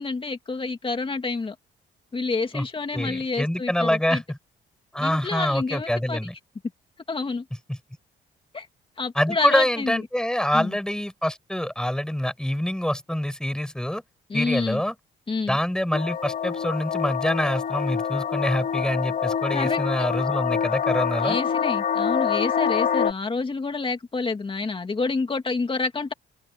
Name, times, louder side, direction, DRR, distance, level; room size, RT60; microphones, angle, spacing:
voice 1, 0.0-1.6 2.1-4.2 5.0-6.2 7.1-7.5 8.5-8.7 9.0-10.0 10.5-10.8 14.3-14.8 15.3-15.6 19.5-19.8 21.2-26.1, left 4 dB, 30° left, 2.6 m, -28 dB
voice 2, 2.9-4.4 4.9-6.3 7.7-7.8 9.2-14.0 14.3-14.9 15.5-21.4, left 1 dB, 5° left, 7.2 m, -25 dB
sound 1, 15.9-23.1, left 7 dB, 50° left, 2.4 m, -26 dB
cardioid pair, 105°, 19 cm